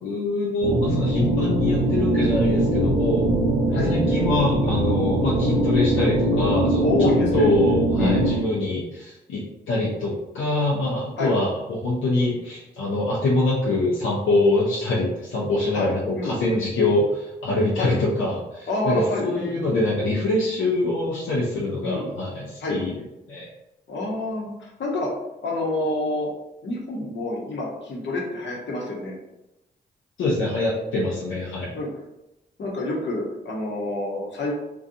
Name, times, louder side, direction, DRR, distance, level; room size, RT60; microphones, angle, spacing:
voice 1, 0.0-3.3 3.7-22.9 23.3-23.4 30.2-31.7, left 2 dB, 85° left, -5 dB, 0.5 m, -24 dB
sound 1, 0.6-8.4, right 1 dB, 75° right, 0.5 m, -22 dB
voice 2, 6.8-7.5 8.0-8.2 11.2-11.3 15.7-16.4 17.8-17.9 18.7-19.5 21.8-22.1 22.6-22.8 23.9-25.1 25.4-26.3 26.6-29.2 31.7-31.9 32.6-34.5, left 2 dB, 65° left, -3 dB, 0.9 m, -27 dB
2.5 x 2.3 x 2.6 m, 0.93 s
supercardioid pair, 45°, 20 cm